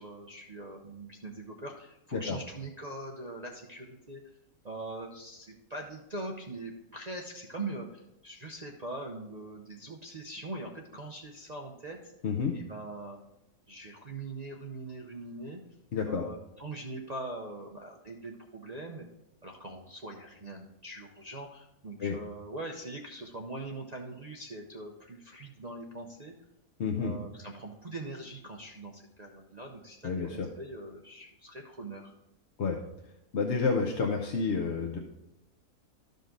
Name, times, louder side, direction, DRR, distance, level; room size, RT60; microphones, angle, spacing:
voice 1, 0.0-4.2 4.6-12.1 12.5-13.2 13.7-15.6 16.0-19.1 19.4-26.3 27.0-32.1, right 2 dB, 35° right, -1 dB, 0.7 m, -42 dB
voice 2, 12.2-12.5 15.9-16.2 22.0-22.2 26.8-27.1 30.0-30.5 32.6-32.8 33.3-35.0, left 5 dB, 55° left, 2 dB, 1.0 m, -29 dB
13.5 x 5.2 x 3.8 m, 0.87 s
omnidirectional pair, 1.6 m